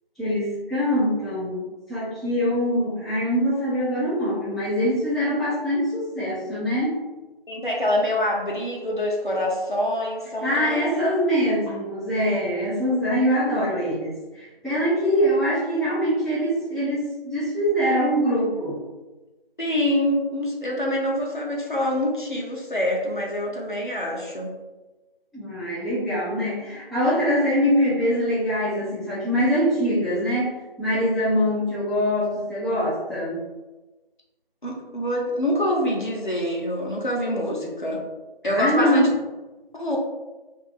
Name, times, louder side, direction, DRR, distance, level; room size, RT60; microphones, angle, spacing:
voice 1, 0.2-7.0 10.4-18.8 25.3-30.5 30.8-33.4 38.4-39.0, equal, ahead, -12 dB, 0.5 m, -23 dB
voice 2, 7.5-11.0 19.6-24.5 34.6-38.0 38.4-39.1 39.7-40.0, left 1 dB, 55° left, -2 dB, 0.9 m, -25 dB
2.6 x 2.4 x 4.1 m, 1.1 s
figure-of-eight pair, 180°, 30 cm